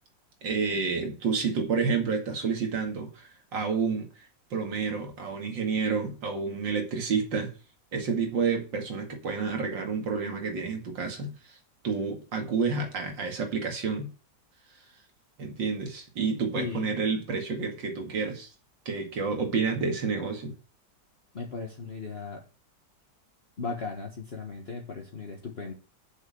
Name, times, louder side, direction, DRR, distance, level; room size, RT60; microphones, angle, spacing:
voice 1, 0.4-4.1 4.5-7.5 7.9-11.6 11.8-14.1 15.4-18.5 18.9-20.5, right 5 dB, 85° right, 3 dB, 2.8 m, -29 dB
voice 2, 16.6-16.9 21.3-22.4 23.6-25.7, left 4 dB, 35° left, 0 dB, 1.5 m, -36 dB
8.0 x 6.6 x 7.7 m, 0.36 s
omnidirectional pair, 1.9 m